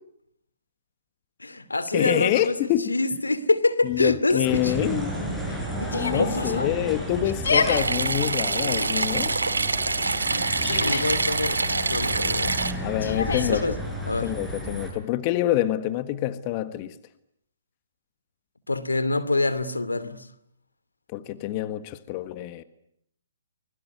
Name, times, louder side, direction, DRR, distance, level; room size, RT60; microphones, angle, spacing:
voice 1, 1.4-4.7 5.5-6.7 10.3-12.6 13.3-13.8 14.1-14.3 18.7-20.3, left 2 dB, 90° left, 2.6 m, -26 dB
voice 2, 1.9-2.9 3.8-5.1 5.9-9.4 12.8-13.7 14.2-16.9 21.1-22.6, left 14 dB, 35° left, 1.5 m, -26 dB
sound 1, 4.4-14.9, equal, 5° left, 7.6 m, -33 dB
Yell, 5.9-6.4 7.2-7.8 8.6-9.1 10.3-11.2 13.0-13.6, left 4 dB, 75° left, 4.6 m, -27 dB
sound 2, 7.7-12.7, right 3 dB, 85° right, 2.7 m, -25 dB
25.0 x 21.5 x 9.5 m
figure-of-eight pair, 130°, 0 cm